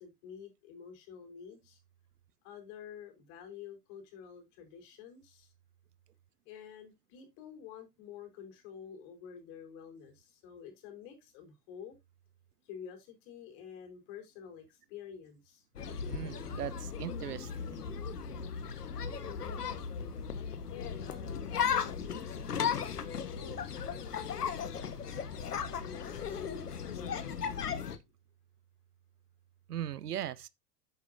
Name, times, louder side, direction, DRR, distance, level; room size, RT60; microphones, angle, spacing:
voice 1, 0.0-1.8 2.4-5.5 6.4-11.9 12.6-15.6 19.3-19.6 20.7-25.0 25.7-27.9, left 8 dB, 55° left, 4.7 m, -49 dB
sound 1, 15.8-28.0, left 7 dB, 75° left, 1.5 m, -36 dB
voice 2, 16.1-17.8 29.7-30.5, right 11 dB, 75° right, 0.8 m, -39 dB
11.0 x 8.2 x 2.7 m
figure-of-eight pair, 75°, 47 cm